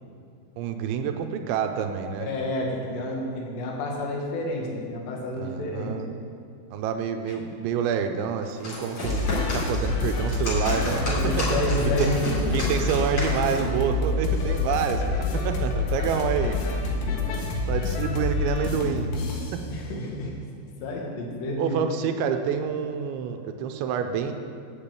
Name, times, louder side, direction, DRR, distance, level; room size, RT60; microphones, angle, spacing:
voice 1, 0.6-2.3 5.4-6.1 6.7-11.6 12.0-12.1 12.5-16.6 17.7-19.1 19.5-19.6 21.6-24.3, right 7 dB, 85° right, 6 dB, 2.9 m, -28 dB
voice 2, 2.2-5.9 7.3-7.4 10.9-12.8 16.4-16.8 17.1-17.2 17.5-17.9 19.7-20.3 20.8-21.8, left 1 dB, 70° left, -1 dB, 3.7 m, -30 dB
sound 1, 8.4-13.7, left 1 dB, 35° left, 3.4 m, -32 dB
sound 2, 9.0-19.6, left 3 dB, 85° left, 4.0 m, -27 dB
8.9 x 8.1 x 8.3 m, 2.4 s
omnidirectional pair, 5.4 m